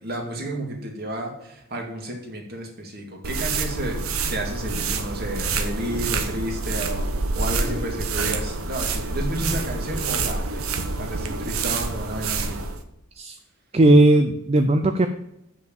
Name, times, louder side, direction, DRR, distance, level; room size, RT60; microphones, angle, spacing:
voice 1, 0.0-4.0 4.3-7.1 7.4-12.6, right 1 dB, 45° right, 1 dB, 2.4 m, -31 dB
sound 1, 3.2-12.8, right 3 dB, 80° right, 1.0 m, -27 dB
voice 2, 13.7-15.1, right 1 dB, 30° right, 8 dB, 0.5 m, -16 dB
7.3 x 6.2 x 7.6 m, 0.85 s
head